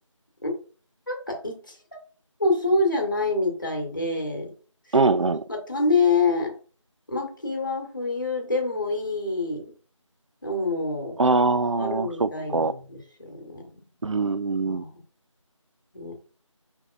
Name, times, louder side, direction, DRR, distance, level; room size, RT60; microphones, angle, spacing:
voice 1, 1.1-2.0 2.4-4.5 4.9-5.0 5.5-6.5 7.1-9.7 10.4-11.2 11.8-13.7 14.6-14.9 15.9-16.2, left 3 dB, 40° left, 1.2 m, -26 dB
voice 2, 4.9-5.4 11.2-12.7 14.0-14.8, right 3 dB, 70° right, 0.4 m, -23 dB
5.4 x 3.5 x 2.4 m
figure-of-eight pair, 175°, 17 cm